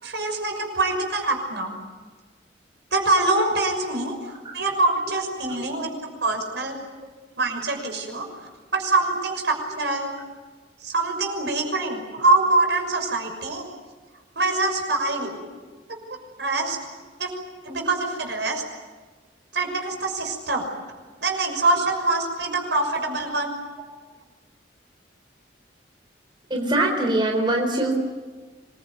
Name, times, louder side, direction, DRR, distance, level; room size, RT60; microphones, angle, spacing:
voice 1, 0.0-1.7 2.9-5.9 6.2-6.8 7.4-10.1 10.8-13.6 14.4-15.4 16.4-16.8 17.2-17.3 17.6-18.6 19.5-20.7 21.2-23.5, right 2 dB, 70° right, 3 dB, 6.2 m, -24 dB
voice 2, 26.5-27.9, right 1 dB, 25° right, 1 dB, 4.0 m, -22 dB
26.5 x 22.5 x 9.5 m, 1.4 s
head